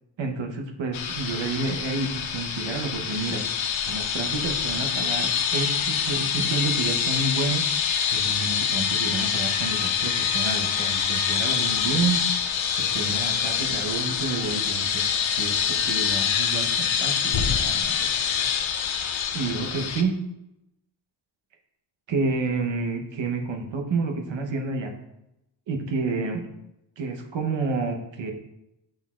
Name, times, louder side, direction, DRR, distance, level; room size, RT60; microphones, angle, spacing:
voice 1, 0.2-7.6 8.1-12.2 12.8-15.0 15.4-18.5 19.3-20.2 22.1-24.9 25.7-26.5 27.0-28.3, right 3 dB, 75° right, 3 dB, 1.1 m, -29 dB
sound 1, 0.9-20.0, left 7 dB, 85° left, 0.7 m, -25 dB
6.4 x 6.0 x 2.5 m, 0.87 s
cardioid pair, 70°, 46 cm